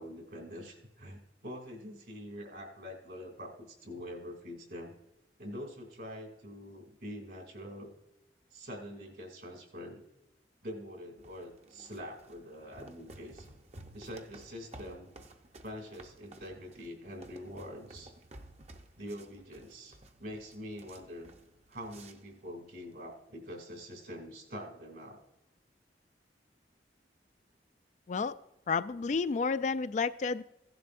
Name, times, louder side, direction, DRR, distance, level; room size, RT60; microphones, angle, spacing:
voice 1, 0.0-4.9 5.4-7.9 8.5-10.0 10.6-13.5 13.9-15.1 15.6-18.1 19.0-21.3 21.7-25.2, equal, 65° right, 2 dB, 2.6 m, -45 dB
sound 1, 11.2-23.2, right 1 dB, 40° right, 0.7 m, -54 dB
voice 2, 28.7-30.4, left 4 dB, 40° left, 13 dB, 0.3 m, -31 dB
16.0 x 11.0 x 2.6 m, 0.91 s
head